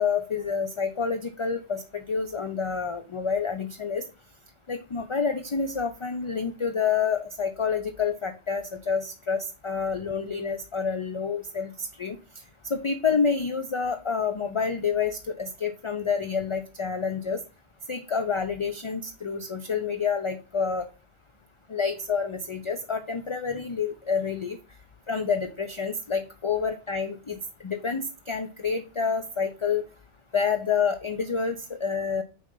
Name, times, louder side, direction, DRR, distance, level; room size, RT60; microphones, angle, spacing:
voice 1, 0.0-4.0 4.7-12.2 12.6-17.4 17.9-20.9 21.7-24.6 25.1-27.4 27.6-29.8 30.3-32.2, left 5 dB, 35° left, 7 dB, 0.5 m, -28 dB
6.3 x 4.1 x 5.3 m, 0.33 s
omnidirectional pair, 1.1 m